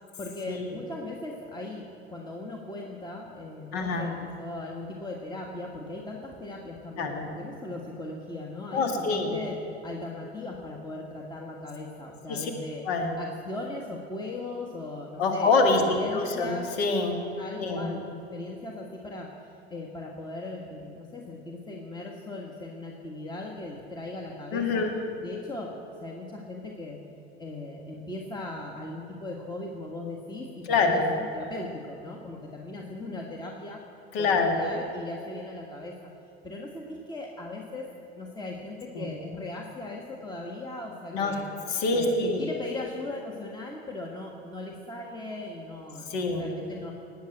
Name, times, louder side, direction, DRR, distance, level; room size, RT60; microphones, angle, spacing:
voice 1, 0.2-12.8 13.2-15.6 15.9-16.7 17.4-18.0 18.3-24.9 25.2-27.0 27.4-33.8 34.2-35.9 36.4-41.4 41.9-46.9, left 2 dB, 15° left, 0 dB, 1.5 m, -38 dB
voice 2, 3.7-4.1 7.0-7.2 8.7-9.4 12.3-12.5 12.9-13.2 15.2-17.2 17.6-17.9 24.5-25.0 30.7-31.1 34.1-34.6 39.0-39.1 41.1-41.3 41.7-42.4 46.1-46.5, left 3 dB, 65° left, 3 dB, 2.1 m, -25 dB
19.5 x 7.4 x 7.8 m, 2.9 s
figure-of-eight pair, 75°, 33 cm